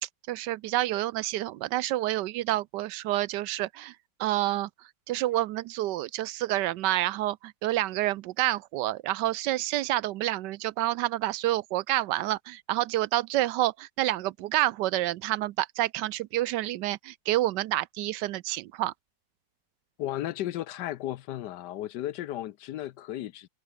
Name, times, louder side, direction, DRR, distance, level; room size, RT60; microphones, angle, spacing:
voice 1, 0.3-3.9 4.2-4.7 5.1-18.9, right 15 dB, 80° right, 1.2 m, -28 dB
voice 2, 20.0-23.5, left 13 dB, 75° left, 1.3 m, -34 dB
open air
omnidirectional pair, 1.8 m